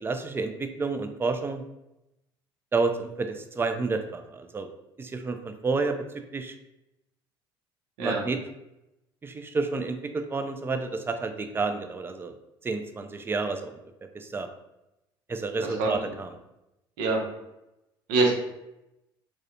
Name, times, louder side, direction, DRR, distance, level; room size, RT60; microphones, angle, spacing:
voice 1, 0.0-1.6 2.7-4.7 5.0-6.1 6.3-6.5 8.0-8.4 9.2-12.3 12.6-13.8 14.1-14.5 15.3-16.3, right 3 dB, 20° right, 7 dB, 0.3 m, -30 dB
voice 2, 15.6-15.9 17.0-17.2 18.1-18.3, right 3 dB, 70° right, 0 dB, 0.6 m, -24 dB
2.4 x 2.1 x 2.7 m, 0.91 s
hypercardioid pair, 65°, 12 cm